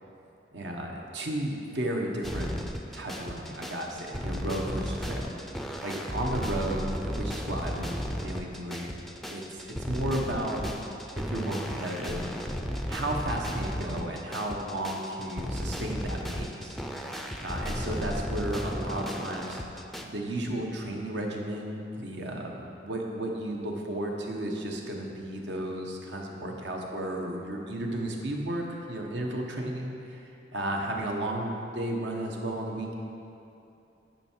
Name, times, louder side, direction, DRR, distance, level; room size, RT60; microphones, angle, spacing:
voice 1, 0.5-2.5 2.9-5.3 5.8-9.0 9.3-10.7 11.1-12.2 12.9-16.8 17.4-19.6 20.0-30.2 30.5-32.9, right 1 dB, 70° right, 0 dB, 1.1 m, -33 dB
sound 1, 2.2-20.0, equal, ahead, 0.4 m, -34 dB
10.5 x 5.6 x 4.5 m, 2.8 s
head